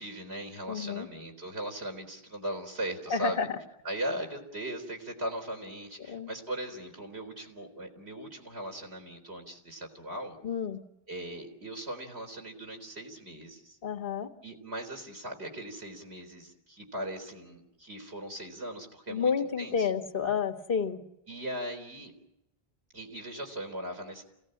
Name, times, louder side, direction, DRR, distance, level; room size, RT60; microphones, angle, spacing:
voice 1, 0.0-3.4 3.8-10.4 11.1-13.8 14.4-19.3 19.6-19.9 21.3-22.1 22.9-24.2, right 1 dB, 90° right, 1 dB, 4.3 m, -39 dB
voice 2, 0.7-1.1 3.1-3.5 6.1-6.3 10.4-10.8 13.8-14.3 19.1-21.0, left 6 dB, 60° left, 2 dB, 2.0 m, -30 dB
28.0 x 17.5 x 8.7 m, 0.88 s
omnidirectional pair, 1.1 m